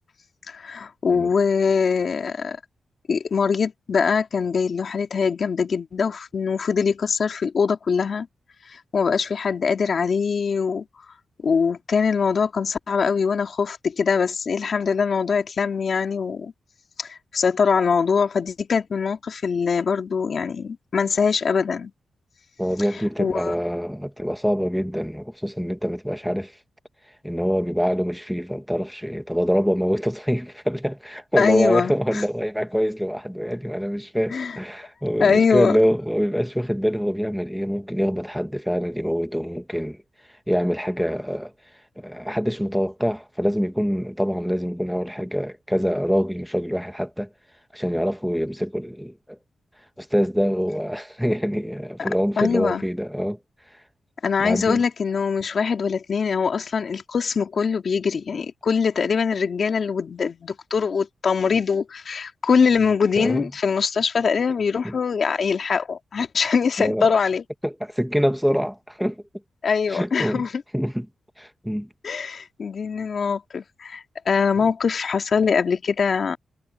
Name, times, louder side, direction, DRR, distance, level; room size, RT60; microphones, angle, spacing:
voice 1, 0.5-2.6 3.1-8.3 8.7-10.8 11.4-16.5 17.0-21.9 23.2-23.5 31.4-32.2 34.3-34.6 35.2-35.8 52.0-52.1 52.4-52.8 54.2-67.4 69.6-70.5 72.0-76.4, left 5 dB, 60° left, 2.4 m, -23 dB
voice 2, 22.6-26.5 27.2-40.0 40.5-41.5 42.0-47.3 47.7-49.4 50.0-53.4 54.4-54.8 63.2-63.4 64.8-64.9 66.8-67.1 67.6-69.2 69.9-70.5 70.7-71.1 71.4-71.9 74.6-74.7, equal, ahead, 1.6 m, -25 dB
cardioid pair, 85°, 0 cm